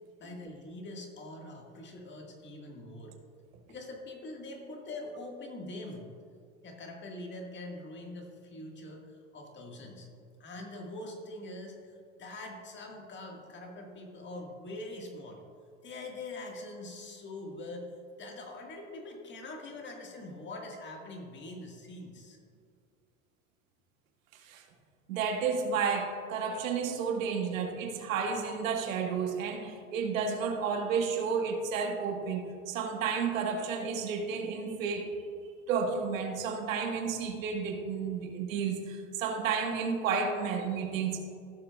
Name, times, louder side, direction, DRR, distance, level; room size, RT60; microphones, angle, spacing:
voice 1, 0.2-3.2 3.7-6.1 6.6-10.1 10.4-15.4 15.8-22.4, left 2 dB, 30° left, 1 dB, 1.8 m, -43 dB
voice 2, 25.1-35.1 35.7-41.2, right 5 dB, 90° right, 3 dB, 1.5 m, -31 dB
15.5 x 6.8 x 2.4 m, 2.3 s
supercardioid pair, 120°, 39 cm